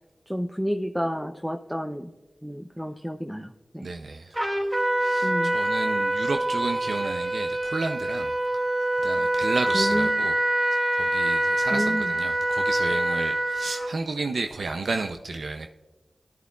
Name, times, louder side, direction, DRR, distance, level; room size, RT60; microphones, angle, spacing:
voice 1, 0.3-2.1 2.4-3.9 5.2-5.6 9.7-10.1 11.7-12.1, equal, ahead, 0.6 m, -30 dB
voice 2, 3.8-4.7 5.0-8.3 9.0-10.3 10.9-15.7, right 3 dB, 80° right, 0.5 m, -32 dB
Trumpet, 4.3-13.9, right 1 dB, 30° right, 2.6 m, -25 dB
16.0 x 11.0 x 2.4 m
cardioid pair, 40°, 0 cm